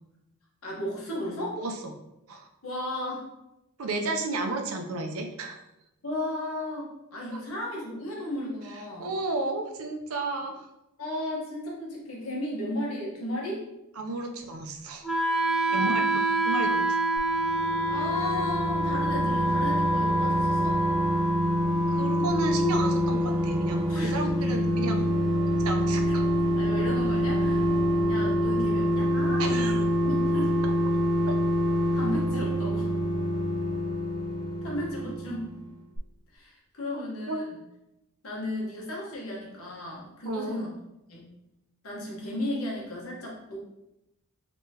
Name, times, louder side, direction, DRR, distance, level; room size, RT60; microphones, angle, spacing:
voice 1, 0.6-1.6 2.6-3.3 6.0-9.1 11.0-13.6 15.7-16.0 17.9-20.8 23.9-24.2 24.5-24.6 26.1-26.2 26.6-27.6 28.1-30.5 31.9-32.9 34.6-35.5 36.3-37.6 38.2-40.8 41.1-41.3 41.8-43.6, left 1 dB, 70° left, -3 dB, 1.1 m, -34 dB
voice 2, 3.8-5.6 7.3-7.4 9.0-10.5 14.0-15.0 15.7-17.0 21.9-25.2 25.6-26.3 29.4-29.8 37.3-37.4 40.3-40.6, right 2 dB, 75° right, 4 dB, 0.5 m, -32 dB
Wind instrument woodwind instrument, 15.0-25.0, right 1 dB, ahead, 0.3 m, -28 dB
sound 1, 17.2-35.7 36.0-36.1, equal, 20° right, 0.7 m, -26 dB
3.7 x 2.9 x 2.7 m, 0.90 s
head